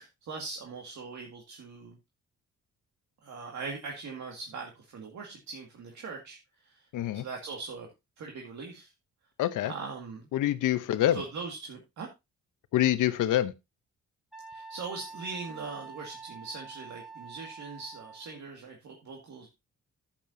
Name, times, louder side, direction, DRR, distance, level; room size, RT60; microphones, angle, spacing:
voice 1, 0.0-2.0 3.2-6.9 7.1-7.9 8.2-8.9 9.6-10.3 11.1-12.1 14.5-19.5, right 4 dB, 65° right, 2.1 m, -41 dB
voice 2, 6.9-7.3 9.4-9.7 10.3-11.2 12.7-13.5, left 13 dB, 85° left, 0.9 m, -26 dB
Wind instrument woodwind instrument, 14.3-18.4, right 4 dB, ahead, 2.3 m, -46 dB
10.5 x 8.6 x 2.7 m
cardioid pair, 95°, 30 cm